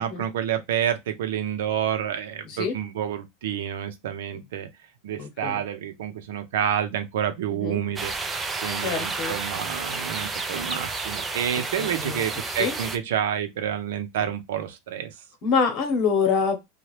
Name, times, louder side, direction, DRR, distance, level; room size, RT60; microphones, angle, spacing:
voice 1, 0.0-4.7 5.0-8.1 8.6-15.1, right 9 dB, 80° right, 0.7 m, -29 dB
voice 2, 5.2-5.6 7.5-7.8 8.8-9.4 11.8-12.2 12.6-12.7 15.4-16.6, left 5 dB, 40° left, 1.1 m, -25 dB
sound 1, 8.0-13.0, right 4 dB, 15° right, 0.4 m, -31 dB
2.9 x 2.3 x 3.1 m
supercardioid pair, 145°, 0 cm